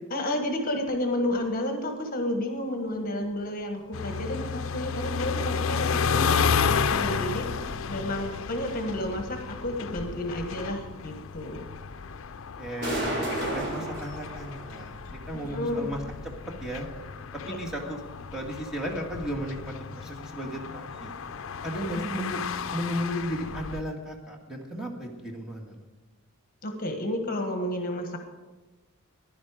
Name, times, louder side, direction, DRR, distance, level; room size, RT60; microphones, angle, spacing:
voice 1, 0.1-6.4 6.7-7.5 7.9-11.6 15.3-15.9 17.5-17.6 21.8-22.0 26.6-28.2, left 1 dB, 40° left, 5 dB, 1.5 m, -31 dB
sound 1, 2.9-22.0, right 1 dB, 55° right, 5.2 m, -41 dB
sound 2, 3.9-23.8, left 6 dB, 65° left, 0.5 m, -32 dB
voice 2, 12.6-16.0 16.6-16.9 17.5-18.0 18.3-21.1 21.6-22.4 22.7-25.8, equal, ahead, -1 dB, 1.9 m, -34 dB
16.0 x 11.0 x 5.0 m, 1.2 s
head